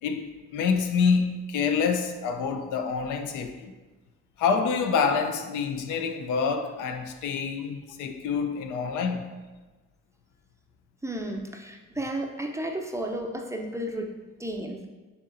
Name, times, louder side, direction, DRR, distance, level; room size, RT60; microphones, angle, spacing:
voice 1, 0.0-3.7 4.4-9.4, left 5 dB, 85° left, 0.5 m, -27 dB
voice 2, 11.0-14.9, right 1 dB, 10° right, 0.4 m, -33 dB
6.8 x 2.9 x 2.5 m
cardioid pair, 90°, 30 cm